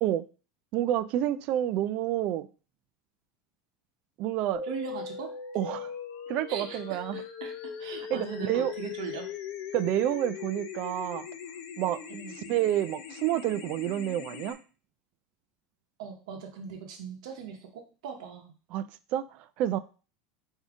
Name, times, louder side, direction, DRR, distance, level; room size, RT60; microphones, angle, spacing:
voice 1, 0.7-2.5 4.2-4.6 5.5-5.9 6.3-7.2 8.1-8.7 9.7-11.3 11.8-12.0 12.5-14.6 18.7-18.8 19.1-19.8, right 12 dB, 45° right, 0.3 m, -29 dB
sound 1, 4.5-14.5, left 7 dB, 55° left, 0.6 m, -40 dB
voice 2, 4.6-5.3 6.5-9.3 12.1-12.4 16.0-18.5, right 7 dB, 80° right, 0.8 m, -40 dB
4.9 x 2.7 x 3.6 m
supercardioid pair, 160°, 3 cm